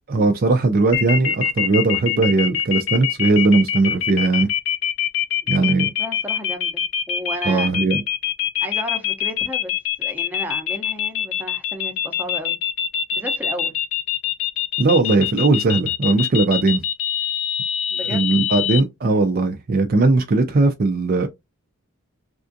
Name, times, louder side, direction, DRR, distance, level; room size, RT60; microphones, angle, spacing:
voice 1, 0.1-4.5 5.5-5.9 7.5-8.0 14.8-16.8 18.0-21.3, right 3 dB, 45° right, 0.4 m, -18 dB
sound 1, 0.9-18.8, left 10 dB, 65° left, 0.5 m, -24 dB
voice 2, 5.4-7.7 8.6-9.7 10.0-12.6 13.1-13.7 15.0-15.1 17.9-18.3, equal, 10° right, 0.7 m, -33 dB
3.4 x 2.5 x 2.6 m
head